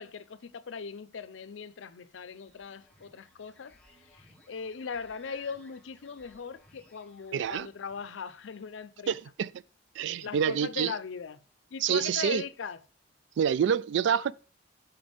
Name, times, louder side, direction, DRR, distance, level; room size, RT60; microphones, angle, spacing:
voice 1, 0.0-9.2 10.2-11.4 11.7-12.8, left 6 dB, 80° left, 0.5 m, -40 dB
sound 1, 2.2-8.8, left 1 dB, 5° left, 1.1 m, -61 dB
voice 2, 7.3-7.7 9.1-9.5 10.0-10.9 11.8-12.4 13.4-14.3, right 8 dB, 65° right, 0.3 m, -27 dB
5.8 x 5.2 x 5.2 m
head